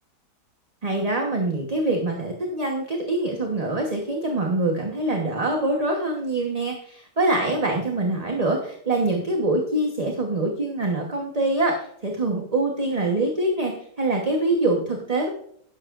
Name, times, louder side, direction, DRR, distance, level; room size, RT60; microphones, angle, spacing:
voice 1, 0.8-15.3, right 2 dB, 25° right, 1 dB, 1.0 m, -24 dB
12.0 x 10.5 x 2.5 m, 0.65 s
omnidirectional pair, 1.8 m